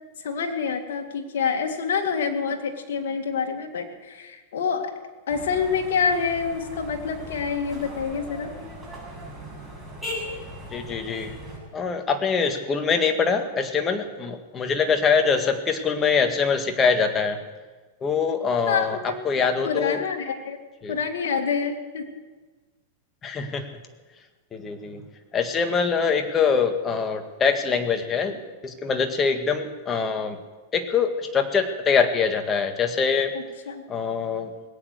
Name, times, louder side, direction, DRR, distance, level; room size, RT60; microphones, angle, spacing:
voice 1, 0.2-4.9 5.3-8.6 18.7-20.6 20.9-22.0 33.3-33.8, left 6 dB, 75° left, 3 dB, 2.2 m, -27 dB
sound 1, 5.3-11.6, equal, ahead, 7.0 m, -38 dB
voice 2, 10.7-11.4 11.7-17.4 18.0-20.0 20.8-21.0 23.2-23.7 24.5-25.0 25.3-28.4 28.6-30.4 30.7-33.3 33.9-34.5, left 5 dB, 25° left, 7 dB, 1.8 m, -24 dB
19.5 x 9.0 x 8.1 m, 1.3 s
hypercardioid pair, 125°, 0 cm